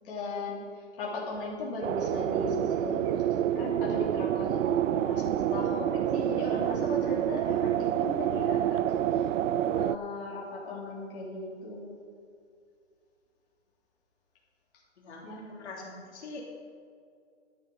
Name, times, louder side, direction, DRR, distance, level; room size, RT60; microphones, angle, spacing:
voice 1, 0.0-9.3 9.7-12.0 15.2-15.4, left 2 dB, 45° left, -5 dB, 2.9 m, -37 dB
sound 1, 1.8-10.0, right 11 dB, 85° right, 0.5 m, -28 dB
voice 2, 15.0-16.4, left 3 dB, 65° left, -2 dB, 3.0 m, -44 dB
11.5 x 9.9 x 5.4 m, 2.3 s
hypercardioid pair, 165°, 37 cm